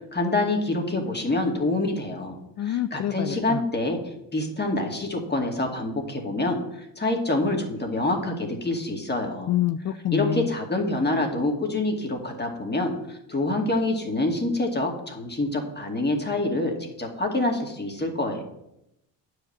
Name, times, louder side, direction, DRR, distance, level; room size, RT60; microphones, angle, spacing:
voice 1, 0.1-4.0 4.3-9.5 10.1-18.4, left 2 dB, 20° left, 2 dB, 2.3 m, -26 dB
voice 2, 2.6-3.6 9.5-10.5, left 12 dB, 40° left, 12 dB, 0.4 m, -27 dB
8.9 x 5.1 x 7.4 m, 0.83 s
supercardioid pair, 70°, 45 cm